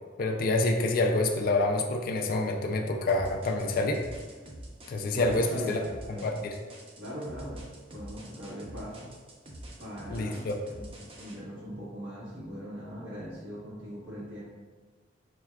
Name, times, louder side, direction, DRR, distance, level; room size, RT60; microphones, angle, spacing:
voice 1, 0.2-4.0 4.9-5.8 6.2-6.5 10.1-10.6, left 2 dB, 50° left, 2 dB, 0.4 m, -27 dB
sound 1, 3.1-11.3, right 1 dB, 30° right, 0.5 m, -46 dB
voice 2, 5.1-5.8 6.1-6.3 7.0-7.6 7.9-9.1 9.8-14.4, equal, 90° right, -8 dB, 1.3 m, -40 dB
5.9 x 2.3 x 2.2 m, 1.4 s
head